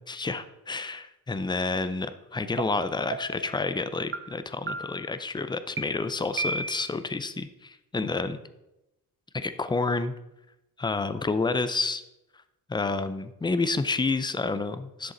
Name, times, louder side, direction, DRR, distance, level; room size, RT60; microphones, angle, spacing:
voice 1, 0.1-8.4 9.3-10.1 10.8-12.0 12.7-15.1, left 3 dB, 15° left, 11 dB, 0.5 m, -29 dB
sound 1, 2.6-2.7 3.1-3.5 4.1-4.2 4.7-5.1 5.8-5.9 6.4-7.0, right 3 dB, 35° right, 0.8 m, -33 dB
11.0 x 6.8 x 3.9 m, 0.91 s
cardioid pair, 125°, 35 cm